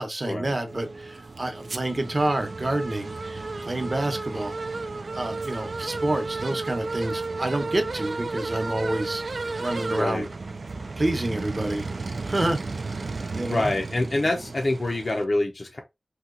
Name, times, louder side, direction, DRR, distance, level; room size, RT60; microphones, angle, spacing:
voice 1, 0.0-4.6 5.1-9.2 9.6-10.3 11.0-11.9 12.2-12.6 13.3-13.7, right 1 dB, 40° right, 0.8 m, -28 dB
sound 1, 0.7-15.2, right 3 dB, 70° right, 0.3 m, -33 dB
voice 2, 9.9-10.3 13.5-15.8, left 2 dB, 50° left, 0.5 m, -26 dB
2.9 x 2.2 x 3.7 m
wide cardioid pair, 75°, 0 cm